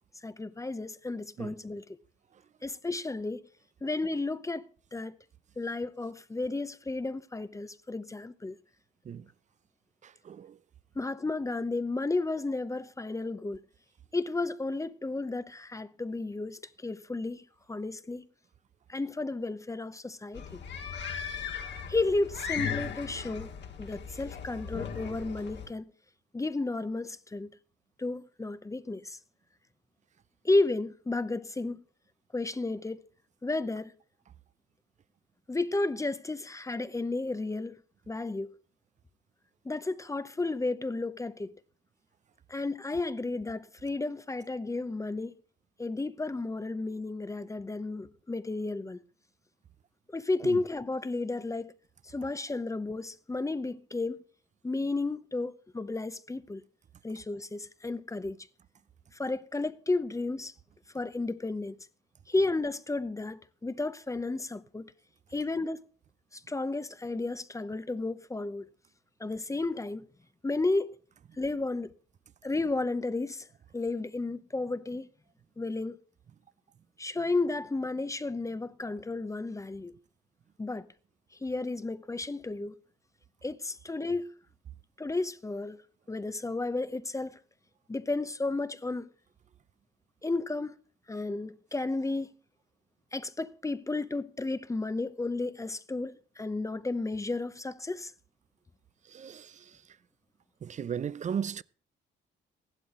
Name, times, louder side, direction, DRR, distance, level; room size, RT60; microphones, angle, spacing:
voice 1, 0.2-1.8 2.6-3.4 3.8-4.6 4.9-5.2 5.6-8.6 11.0-13.6 14.1-17.4 17.7-18.3 18.9-20.6 21.9-23.5 23.8-25.9 26.3-27.5 28.0-29.2 30.4-31.8 32.3-33.0 33.4-33.9 35.5-37.8 38.1-38.6 39.6-41.5 42.5-45.3 45.8-49.0 50.1-51.7 52.1-54.2 54.6-56.6 57.0-58.5 59.1-60.5 60.9-61.8 62.3-64.9 65.3-65.8 66.3-68.7 69.2-70.0 70.4-71.0 71.4-71.9 72.4-73.5 73.7-75.1 75.6-76.0 77.0-80.0 80.6-80.9 81.4-82.7 83.4-84.3 85.0-85.8 86.1-87.4 87.9-89.1 90.2-90.8 91.1-92.3 93.1-98.1, left 2 dB, 15° left, 0.7 m, -32 dB
voice 2, 10.0-10.6 50.4-50.6 99.1-99.6 100.6-101.6, right 8 dB, 40° right, 0.5 m, -36 dB
sound 1, 20.3-25.7, left 7 dB, 60° left, 2.0 m, -37 dB
15.5 x 11.5 x 3.8 m
cardioid pair, 90°, 20 cm